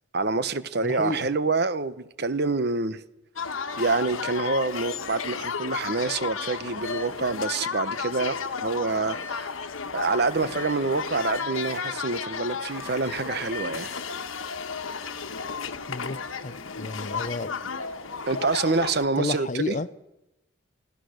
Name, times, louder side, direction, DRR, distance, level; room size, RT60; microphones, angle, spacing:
voice 1, 0.1-3.0 3.8-9.5 9.9-14.0 18.3-19.8, right 3 dB, 50° right, 0.9 m, -27 dB
voice 2, 0.8-1.3 15.9-17.6 19.2-19.9, left 3 dB, 35° left, 0.7 m, -31 dB
sound 1, 3.4-19.1, left 5 dB, 85° left, 1.3 m, -33 dB
28.0 x 16.5 x 6.5 m
head